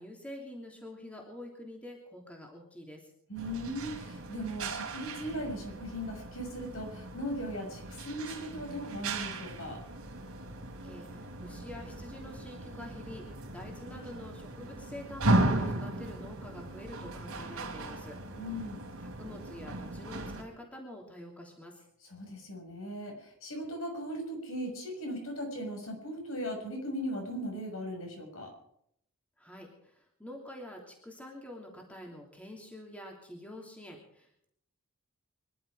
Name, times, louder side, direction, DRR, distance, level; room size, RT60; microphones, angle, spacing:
voice 1, 0.0-3.1 10.8-18.2 19.2-21.8 29.4-34.5, left 1 dB, 5° left, 0 dB, 3.0 m, -47 dB
voice 2, 3.3-9.8 18.3-18.8 22.0-28.5, equal, 70° left, 2 dB, 6.3 m, -38 dB
sound 1, 3.3-20.4, right 2 dB, 75° right, 3.3 m, -36 dB
24.5 x 12.0 x 4.9 m, 0.71 s
head